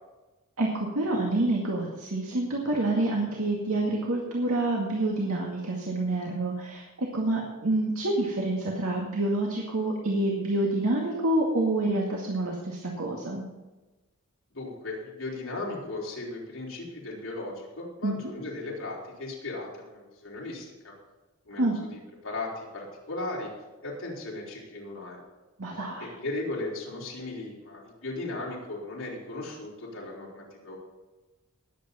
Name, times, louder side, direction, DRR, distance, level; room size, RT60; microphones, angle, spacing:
voice 1, 0.6-13.4 18.0-18.3 21.6-21.8 25.6-26.1, right 2 dB, 80° right, -2 dB, 2.1 m, -27 dB
voice 2, 14.5-20.9 21.4-23.5 23.8-25.2 26.0-30.8, left 2 dB, 60° left, -5 dB, 4.7 m, -37 dB
20.0 x 8.6 x 4.3 m, 1.1 s
head